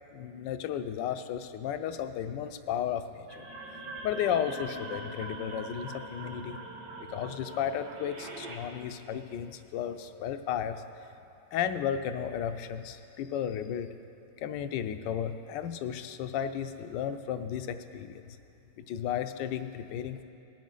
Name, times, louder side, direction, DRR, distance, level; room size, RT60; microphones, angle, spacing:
voice 1, 0.1-3.4 4.0-6.6 7.0-10.8 11.5-13.9 14.4-18.4 18.8-20.2, left 9 dB, 80° left, 10 dB, 1.2 m, -34 dB
sound 1, 3.3-8.6, right 2 dB, 85° right, 2.0 m, -42 dB
19.0 x 7.2 x 3.9 m, 2.7 s
omnidirectional pair, 2.0 m